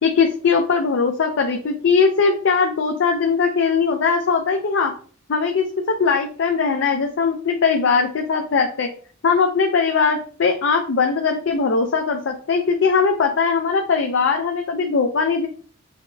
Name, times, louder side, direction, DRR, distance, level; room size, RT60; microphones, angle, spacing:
voice 1, 0.0-4.9 5.3-8.9 9.2-15.5, left 5 dB, 60° left, 3 dB, 0.4 m, -20 dB
5.6 x 2.1 x 2.6 m, 0.42 s
head